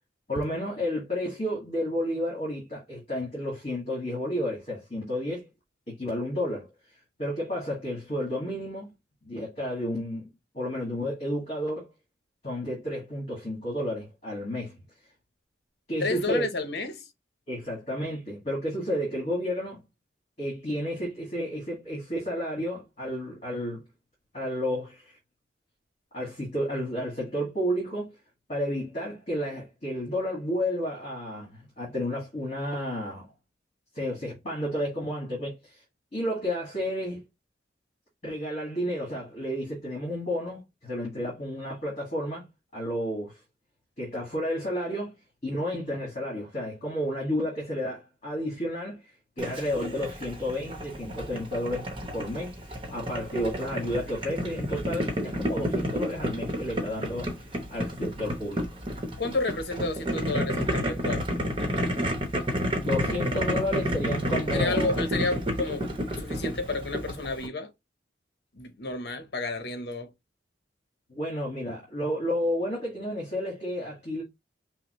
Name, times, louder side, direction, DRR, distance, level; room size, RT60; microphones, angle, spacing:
voice 1, 0.3-5.5 5.9-6.7 7.2-8.9 9.2-10.3 10.5-11.9 12.4-14.8 15.9-16.5 17.5-19.8 20.4-23.8 24.3-25.2 26.1-28.1 28.5-33.3 33.9-35.7 36.1-37.2 38.2-42.5 42.7-43.3 44.0-45.1 45.4-49.0 49.4-57.3 57.7-58.8 62.7-64.9 71.1-74.2, equal, 40° left, 2.0 m, -31 dB
voice 2, 16.0-17.1 59.2-61.2 64.5-65.9 66.1-67.7 68.5-70.1, left 3 dB, 60° left, 0.9 m, -31 dB
Boiling, 49.4-67.5, equal, 30° right, 1.0 m, -30 dB
5.6 x 2.1 x 3.0 m
head